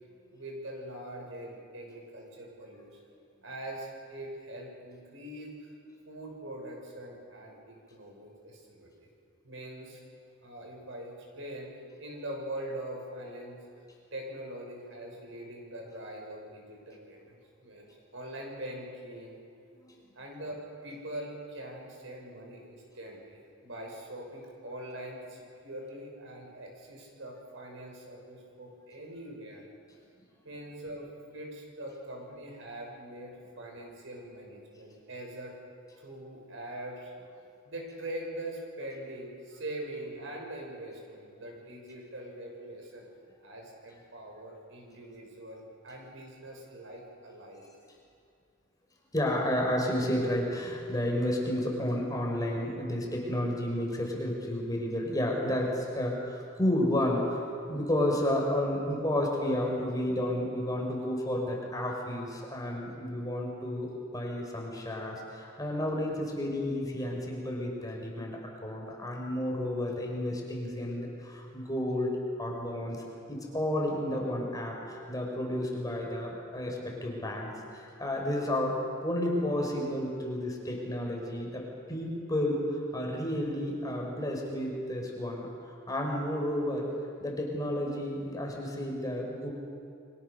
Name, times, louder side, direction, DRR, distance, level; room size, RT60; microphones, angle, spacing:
voice 1, 0.3-3.0 3.4-5.8 6.0-9.1 9.4-10.0 10.4-11.7 12.0-13.6 14.1-19.4 20.1-29.6 30.4-35.6 36.0-37.1 37.6-43.0 43.4-47.6, right 1 dB, 70° right, 0 dB, 6.6 m, -43 dB
voice 2, 49.1-57.4 57.7-72.1 72.4-78.8 79.0-86.9 87.2-89.5, left 1 dB, 20° left, 0 dB, 4.9 m, -31 dB
29.5 x 24.0 x 6.8 m, 2.4 s
head